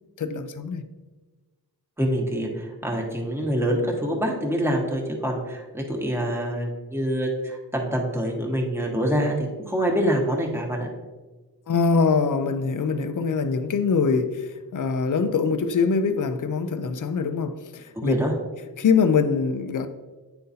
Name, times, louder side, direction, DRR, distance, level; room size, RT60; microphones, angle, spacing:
voice 1, 0.2-0.8 11.7-18.1 18.8-19.9, left 5 dB, 55° left, 0.5 m, -23 dB
voice 2, 2.0-10.9 18.0-18.3, equal, 5° right, 1.2 m, -25 dB
9.5 x 3.9 x 2.7 m
wide cardioid pair, 75°, 38 cm